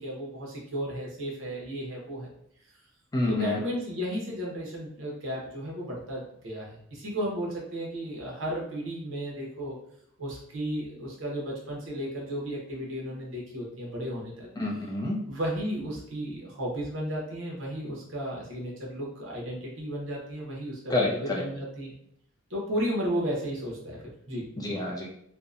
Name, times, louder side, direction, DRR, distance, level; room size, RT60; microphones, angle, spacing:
voice 1, 0.0-2.3 3.3-9.8 10.2-14.5 15.3-21.9 22.5-24.5, equal, 65° right, -3 dB, 0.8 m, -34 dB
voice 2, 3.1-3.6 14.6-15.2 20.9-21.4 24.6-25.1, left 2 dB, 20° left, -3 dB, 0.4 m, -28 dB
2.7 x 2.1 x 2.4 m, 0.71 s
head